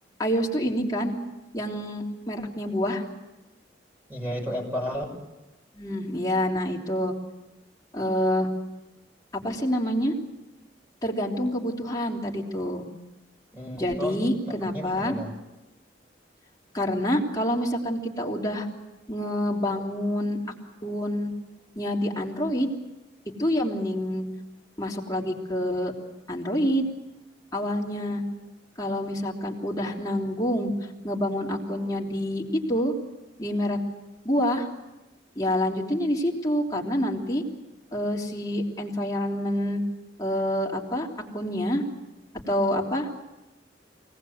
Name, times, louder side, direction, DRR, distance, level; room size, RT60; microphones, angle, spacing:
voice 1, 0.2-1.1 1.5-3.0 5.7-7.1 7.9-8.5 9.4-10.1 11.0-12.8 13.7-15.1 16.7-18.7 19.1-20.4 20.8-21.3 21.7-22.7 23.4-24.2 24.8-25.9 26.3-26.9 27.5-28.2 28.8-30.7 31.0-32.4 32.7-32.9 33.4-33.8 34.2-34.7 35.3-37.4 37.9-39.8 40.2-41.1 41.3-41.8 42.5-43.1, equal, 20° left, -2 dB, 3.3 m, -27 dB
voice 2, 4.1-5.1 13.5-14.2 14.5-15.3, equal, 10° right, -1 dB, 6.2 m, -32 dB
24.5 x 19.0 x 7.9 m, 1.0 s
head